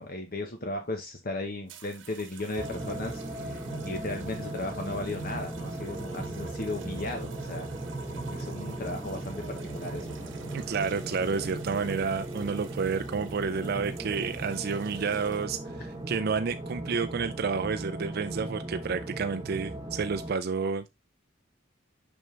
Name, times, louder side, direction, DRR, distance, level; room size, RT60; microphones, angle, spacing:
voice 1, 0.0-7.7 8.3-10.3, left 2 dB, 50° left, 1.1 m, -36 dB
sound 1, 1.7-15.7 16.6-16.9, right 5 dB, 70° right, 1.1 m, -50 dB
sound 2, 2.6-20.3, right 2 dB, 20° right, 1.2 m, -37 dB
voice 2, 10.5-20.9, right 5 dB, 55° right, 0.4 m, -30 dB
6.2 x 5.4 x 3.2 m
head